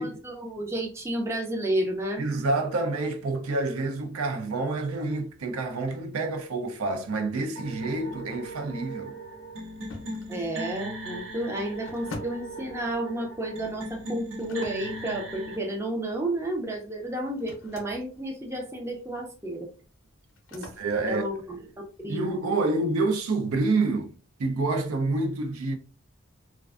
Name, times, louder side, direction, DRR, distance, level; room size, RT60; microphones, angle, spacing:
voice 1, 0.0-2.2 10.3-19.7 20.5-20.7 21.1-21.6 22.0-22.4, right 1 dB, 10° right, 0.4 m, -31 dB
voice 2, 2.2-9.1 20.8-21.2 22.1-24.1 24.4-25.8, right 3 dB, 85° right, 0.5 m, -28 dB
sound 1, 7.6-15.6, right 1 dB, 60° right, 0.8 m, -38 dB
sound 2, 9.9-22.5, left 2 dB, 65° left, 0.5 m, -48 dB
2.4 x 2.2 x 2.3 m
head